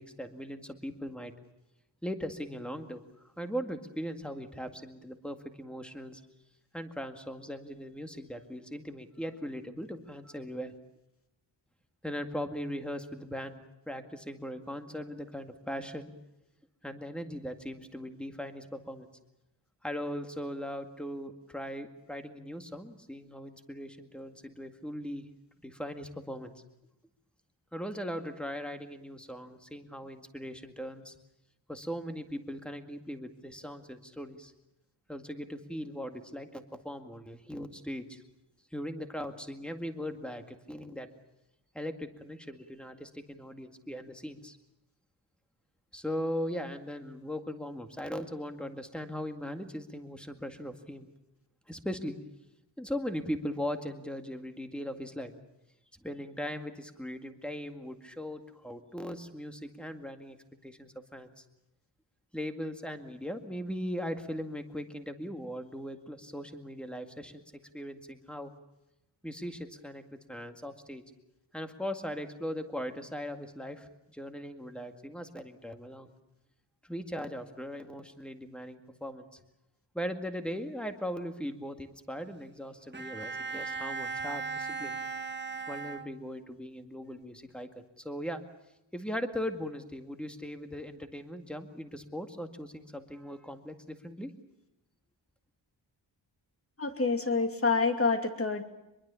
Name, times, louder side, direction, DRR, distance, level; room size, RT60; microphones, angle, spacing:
voice 1, 0.0-1.3 2.0-6.2 6.7-10.7 12.0-13.6 13.9-16.1 16.8-19.1 19.8-25.3 25.6-26.5 27.7-31.1 31.7-34.5 35.1-38.2 38.7-41.1 41.7-44.6 45.9-51.1 51.7-52.1 52.8-55.3 56.0-61.4 62.3-67.4 67.7-68.5 69.2-70.0 70.3-71.0 71.5-76.1 76.8-79.4 79.9-85.0 85.7-88.4 88.9-94.3, equal, ahead, 6 dB, 2.0 m, -39 dB
Bowed string instrument, 82.9-86.6, right 4 dB, 25° right, 1.4 m, -38 dB
voice 2, 96.8-98.6, left 4 dB, 30° left, 6 dB, 2.5 m, -27 dB
24.5 x 22.5 x 7.0 m, 0.93 s
wide cardioid pair, 140°, 45 cm